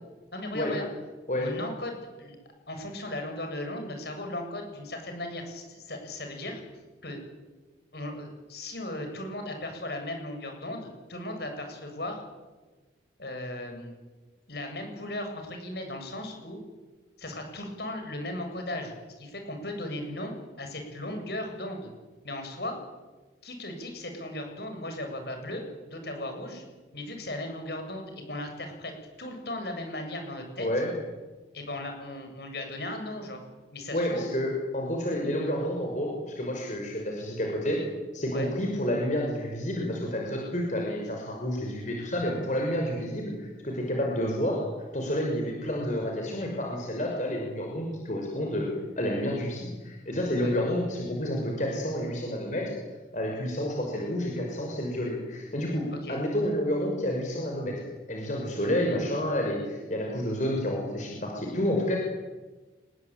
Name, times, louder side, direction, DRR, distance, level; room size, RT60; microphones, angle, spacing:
voice 1, 0.3-0.9 1.4-2.4 2.7-6.6 7.0-7.2 7.9-12.2 13.2-13.9 14.5-16.6 17.2-21.9 22.2-22.8 23.4-26.6 26.9-28.9 29.2-30.7 31.5-33.4 33.7-34.3 38.3-38.5 50.4-50.5 55.9-56.2, left 1 dB, 60° left, 4 dB, 7.7 m, -37 dB
voice 2, 30.6-30.9 33.9-37.8 38.1-44.6 44.9-48.7 49.0-52.7 53.1-57.7 58.1-62.0, equal, 40° left, 0 dB, 6.1 m, -29 dB
28.5 x 22.0 x 9.1 m, 1.2 s
head